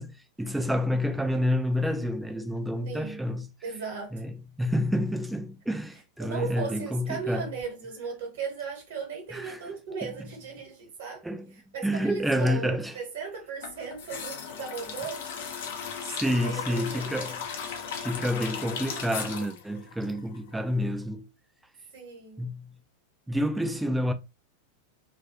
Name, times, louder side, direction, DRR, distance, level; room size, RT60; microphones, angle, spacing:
voice 1, 0.0-3.5 4.1-7.6 9.3-9.6 11.2-13.0 16.0-17.4 18.0-21.3 22.4-22.8 23.3-24.1, equal, 5° right, 0.3 m, -29 dB
voice 2, 2.8-3.2 3.6-4.1 6.2-11.3 11.7-15.3 16.1-17.2 21.9-22.5, right 5 dB, 55° right, 1.1 m, -37 dB
sound 1, 13.6-20.6 20.9-21.0, left 6 dB, 55° left, 0.6 m, -37 dB
2.3 x 2.3 x 2.6 m
figure-of-eight pair, 90°, 0 cm